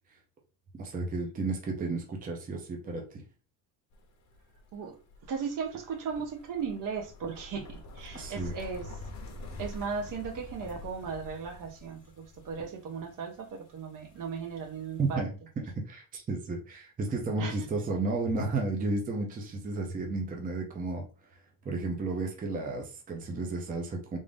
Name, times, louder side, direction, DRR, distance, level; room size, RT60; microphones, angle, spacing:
voice 1, 0.8-3.2 8.1-8.5 15.0-15.3 15.9-21.0 21.6-24.2, right 3 dB, 20° right, 1 dB, 0.6 m, -32 dB
sound 1, 3.9-15.1, left 2 dB, 40° left, 0.8 m, -47 dB
voice 2, 5.3-8.9 9.6-13.5 13.7-15.2 17.4-17.5, right 5 dB, 50° right, 4 dB, 0.8 m, -36 dB
3.6 x 2.5 x 3.4 m, 0.35 s
cardioid pair, 165°, 42 cm